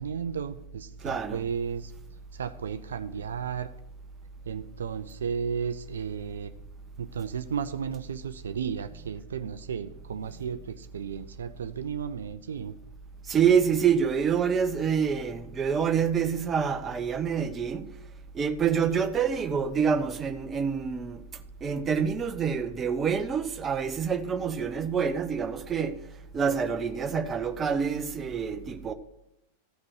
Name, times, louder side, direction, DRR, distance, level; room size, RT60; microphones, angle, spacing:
voice 1, 0.0-1.9 2.3-3.7 4.5-6.5 7.0-12.7, right 7 dB, 65° right, 0.4 m, -34 dB
voice 2, 1.0-1.4 13.3-17.9 18.3-28.9, right 7 dB, 20° right, 0.8 m, -27 dB
13.5 x 5.8 x 6.5 m
figure-of-eight pair, 90°, 0 cm